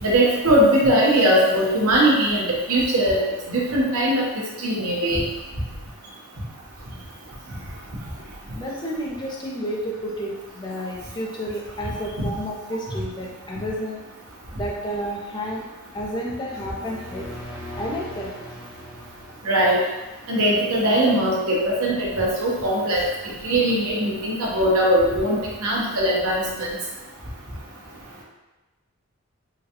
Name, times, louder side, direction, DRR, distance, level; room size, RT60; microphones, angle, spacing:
voice 1, 0.0-3.2 3.5-4.3 4.6-5.2 12.2-12.3 19.4-19.8 20.3-23.0 23.4-26.7, right 1 dB, 80° right, -4 dB, 0.9 m, -20 dB
voice 2, 8.5-14.0 14.5-15.6 15.9-17.3 17.7-18.3, equal, 20° left, -3 dB, 0.5 m, -31 dB
sound 1, 16.3-20.1, left 1 dB, 5° right, 1.0 m, -40 dB
3.8 x 2.3 x 2.8 m, 1.1 s
head